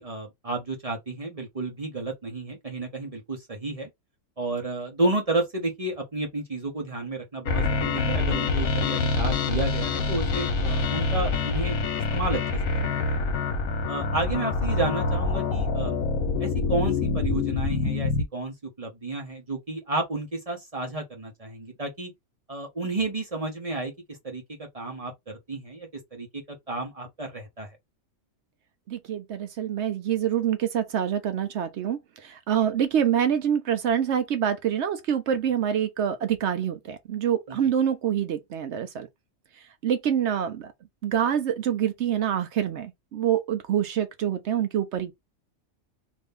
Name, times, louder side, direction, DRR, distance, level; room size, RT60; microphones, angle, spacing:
voice 1, 0.0-3.9 4.4-11.8 12.1-13.3 13.9-16.0 16.4-22.1 22.5-23.9 24.2-27.7 37.5-37.6, right 2 dB, 35° right, 0.7 m, -31 dB
sound 1, 7.5-18.2, left 4 dB, 85° left, 1.2 m, -26 dB
voice 2, 28.9-39.1 39.8-40.7 41.0-45.1, right 9 dB, 65° right, 0.8 m, -26 dB
2.7 x 2.6 x 3.5 m
omnidirectional pair, 1.4 m